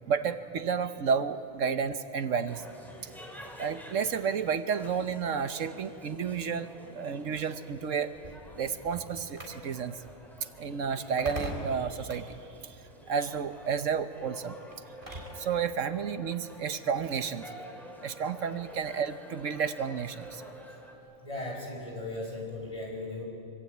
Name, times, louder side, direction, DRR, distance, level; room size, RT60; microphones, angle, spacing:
voice 1, 0.1-2.6 3.6-8.1 8.6-10.0 10.4-12.4 12.6-12.8 13.1-14.5 15.1-17.4 18.0-20.4, right 6 dB, 70° right, 10 dB, 1.3 m, -31 dB
sound 1, 2.5-20.9, equal, ahead, 3.5 m, -50 dB
sound 2, 8.1-15.5, equal, 40° right, 4.1 m, -44 dB
voice 2, 21.2-23.3, left 2 dB, 25° left, 0 dB, 4.9 m, -37 dB
24.5 x 24.5 x 9.3 m, 2.7 s
omnidirectional pair, 1.4 m